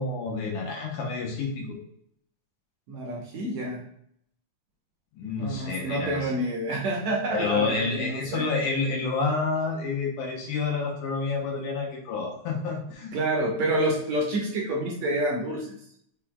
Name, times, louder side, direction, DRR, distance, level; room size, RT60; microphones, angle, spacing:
voice 1, 0.0-1.8 5.2-6.3 7.3-13.1, left 4 dB, 75° left, 0 dB, 2.0 m, -29 dB
voice 2, 2.9-3.8 5.4-8.5 13.1-15.8, right 1 dB, 70° right, -3 dB, 1.9 m, -28 dB
5.9 x 3.6 x 2.2 m, 0.69 s
omnidirectional pair, 3.8 m